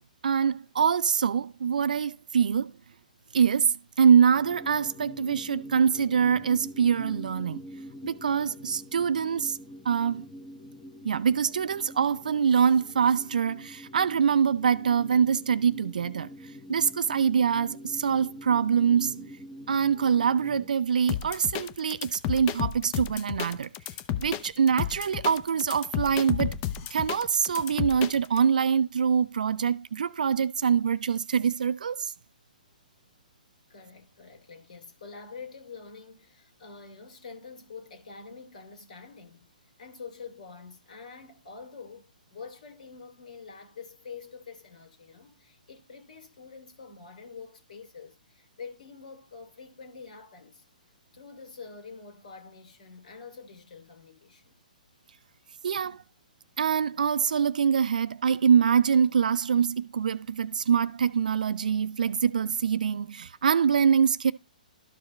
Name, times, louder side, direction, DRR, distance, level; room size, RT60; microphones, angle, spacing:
voice 1, 0.2-2.7 3.3-7.6 8.0-9.6 9.8-10.3 11.0-16.3 16.7-19.3 19.7-23.7 24.1-26.5 26.9-32.1 55.6-56.0 56.6-64.3, right 7 dB, 65° right, 0.5 m, -24 dB
sound 1, 4.3-20.7, equal, 10° left, 1.0 m, -45 dB
sound 2, 21.1-28.4, left 11 dB, 30° left, 0.7 m, -32 dB
voice 2, 33.7-39.5 39.8-50.6 51.1-54.6, left 5 dB, 60° left, 2.6 m, -46 dB
13.0 x 4.9 x 3.1 m
figure-of-eight pair, 125°, 5 cm